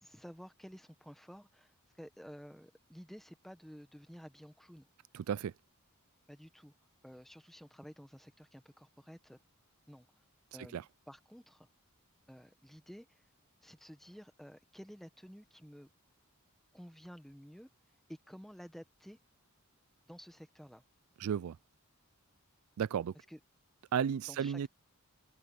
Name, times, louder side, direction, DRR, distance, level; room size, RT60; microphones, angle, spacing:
voice 1, 0.0-4.9 6.3-6.7 7.0-9.4 9.9-10.1 10.5-11.7 12.3-13.2 13.6-15.9 16.7-17.7 18.1-19.2 20.1-20.8 23.3-23.4 24.3-24.7, equal, ahead, 1.4 m, -52 dB
voice 2, 5.1-5.5 10.7-10.8 21.2-21.6 22.8-23.1 23.9-24.7, right 8 dB, 70° right, 0.3 m, -33 dB
open air
head